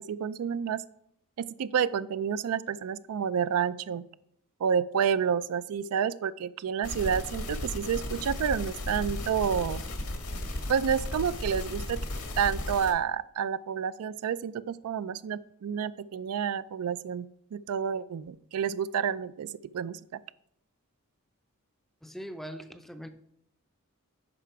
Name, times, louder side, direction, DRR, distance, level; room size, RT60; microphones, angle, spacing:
voice 1, 0.1-0.8 1.4-4.0 4.6-9.8 10.7-12.0 12.4-17.3 17.5-20.2, right 7 dB, 75° right, 16 dB, 0.3 m, -29 dB
sound 1, 6.8-12.9, left 1 dB, 90° left, 1.7 m, -35 dB
voice 2, 22.0-23.1, equal, ahead, 9 dB, 0.5 m, -41 dB
8.8 x 5.9 x 4.6 m, 0.72 s
head